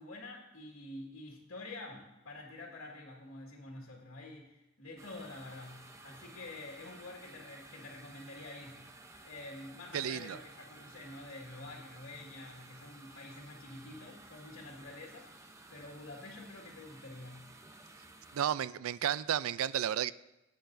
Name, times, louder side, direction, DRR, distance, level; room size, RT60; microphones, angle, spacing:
voice 1, 0.0-9.0 9.2-17.6, left 2 dB, 80° left, 1.8 m, -48 dB
sound 1, 5.0-18.5, right 2 dB, 15° right, 0.6 m, -55 dB
voice 2, 9.9-10.4 18.3-20.1, right 9 dB, 85° right, 0.4 m, -32 dB
17.0 x 9.0 x 2.6 m
head